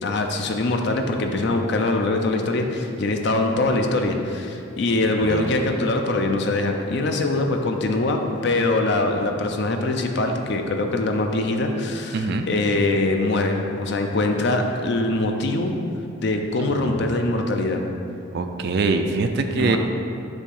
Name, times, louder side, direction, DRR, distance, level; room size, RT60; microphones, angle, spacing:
voice 1, 0.0-15.7 16.2-17.8 19.5-19.8, left 2 dB, 50° left, 4 dB, 0.5 m, -23 dB
voice 2, 5.2-5.6 12.1-12.4 16.8-17.2 18.3-19.8, right 3 dB, 50° right, 6 dB, 0.3 m, -24 dB
7.0 x 2.8 x 5.3 m, 2.6 s
head